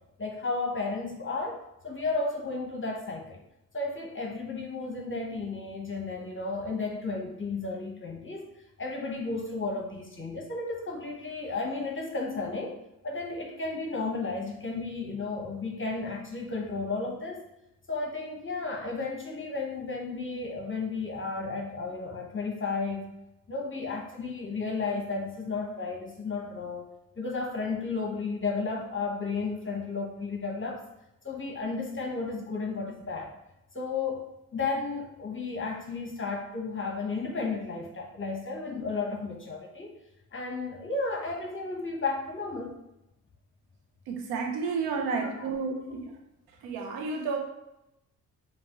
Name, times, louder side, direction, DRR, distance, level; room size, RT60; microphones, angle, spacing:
voice 1, 0.2-3.4 3.7-8.4 8.8-12.8 13.0-17.4 17.9-23.1 23.5-26.8 27.2-30.8 31.2-33.3 33.7-39.9 40.3-42.8 44.6-45.5 45.9-46.0, left 3 dB, 35° left, 1 dB, 0.9 m, -33 dB
voice 2, 44.1-46.2 46.6-47.4, right 4 dB, 85° right, 2 dB, 0.8 m, -31 dB
5.4 x 2.5 x 2.9 m, 0.89 s
hypercardioid pair, 50°, 37 cm